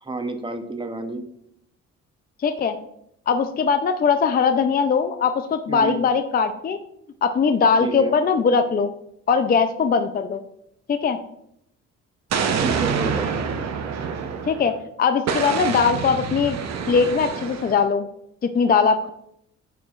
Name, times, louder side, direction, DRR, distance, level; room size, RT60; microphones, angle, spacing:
voice 1, 0.0-1.2 5.7-6.0 7.8-8.1 12.6-13.3, right 2 dB, 15° right, 7 dB, 0.7 m, -30 dB
voice 2, 2.4-2.8 3.3-6.8 7.2-8.9 9.3-10.4 10.9-11.2 14.5-16.6 16.9-18.1 18.4-19.1, left 5 dB, 30° left, 9 dB, 0.4 m, -20 dB
Explosion, 12.3-14.8 15.3-17.8, right 6 dB, 60° right, 0.8 m, -26 dB
9.4 x 4.8 x 2.4 m, 0.75 s
cardioid pair, 90°, 30 cm